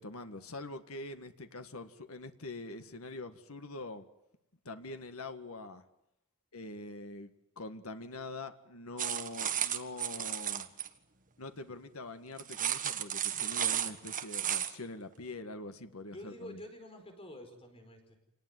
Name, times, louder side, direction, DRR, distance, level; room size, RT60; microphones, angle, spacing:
voice 1, 0.0-4.1 4.6-5.8 6.5-10.7 11.4-16.6, left 2 dB, 80° left, 8 dB, 1.8 m, -44 dB
sound 1, 9.0-10.9 12.4-14.7, right 10 dB, 40° right, 1.6 m, -33 dB
voice 2, 16.1-18.2, left 1 dB, 25° left, 6 dB, 4.8 m, -48 dB
26.5 x 19.5 x 9.6 m, 0.86 s
head